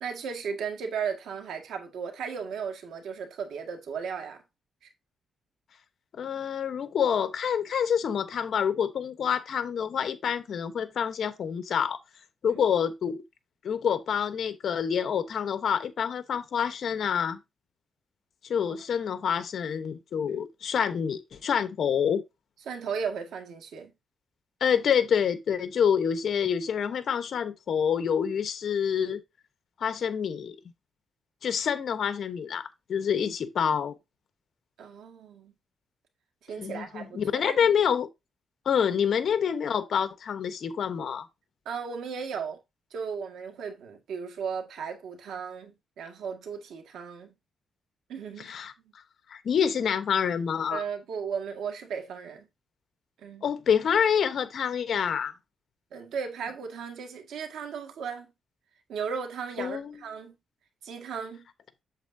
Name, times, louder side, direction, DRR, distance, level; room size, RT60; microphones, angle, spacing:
voice 1, 0.0-4.4 12.5-12.6 20.3-20.4 22.7-23.9 34.8-35.5 36.4-37.7 41.7-42.6 42.9-47.3 48.1-48.5 50.7-52.5 53.2-53.5 55.9-58.3 58.9-60.3 60.8-61.5, right 6 dB, 90° right, 1.8 m, -36 dB
voice 2, 6.1-12.0 12.4-13.2 13.6-17.4 18.4-22.2 24.6-29.2 29.8-30.6 31.4-33.9 36.6-38.1 38.6-41.3 48.4-48.7 49.3-50.8 53.4-55.3 59.6-59.9, left 7 dB, 60° left, 1.0 m, -27 dB
8.1 x 7.4 x 2.7 m
cardioid pair, 125°, 0 cm